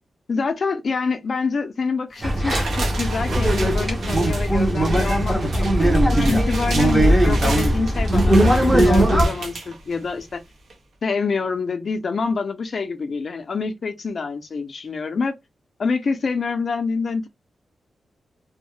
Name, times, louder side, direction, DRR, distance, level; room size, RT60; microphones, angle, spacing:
voice 1, 0.3-10.4 11.0-15.4 15.8-17.3, left 4 dB, 45° left, 0.4 m, -26 dB
sound 1, 2.2-9.3, right 1 dB, 10° right, 0.5 m, -19 dB
sound 2, 2.2-10.3 10.7-10.8, right 3 dB, 85° right, 0.7 m, -33 dB
2.2 x 2.0 x 3.0 m
wide cardioid pair, 170°, 0 cm